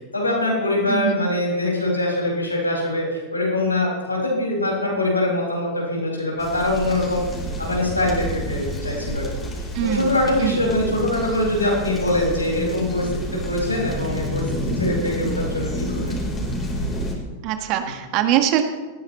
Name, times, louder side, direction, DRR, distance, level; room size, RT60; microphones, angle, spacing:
voice 1, 0.1-7.2 7.6-9.5 9.8-16.2, left 1 dB, 85° left, -3 dB, 6.2 m, -23 dB
voice 2, 0.9-1.2 9.7-10.1 10.4-10.6 17.4-18.6, right 11 dB, 40° right, 7 dB, 1.5 m, -22 dB
sound 1, 6.4-17.2, equal, 15° left, 4.3 m, -29 dB
19.0 x 16.0 x 3.3 m, 1.3 s
figure-of-eight pair, 90°, 0 cm